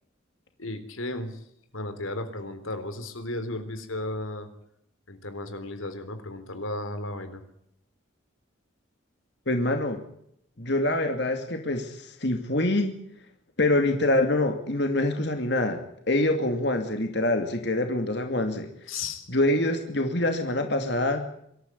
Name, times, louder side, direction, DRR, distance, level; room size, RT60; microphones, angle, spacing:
voice 1, 0.6-1.4 1.7-4.5 5.1-7.4 18.9-19.3, left 2 dB, 85° left, 9 dB, 3.8 m, -34 dB
voice 2, 9.5-10.0 10.6-13.0 13.6-15.8 16.1-18.7 19.3-21.3, left 1 dB, 55° left, 5 dB, 2.6 m, -25 dB
25.5 x 14.0 x 9.8 m, 0.73 s
head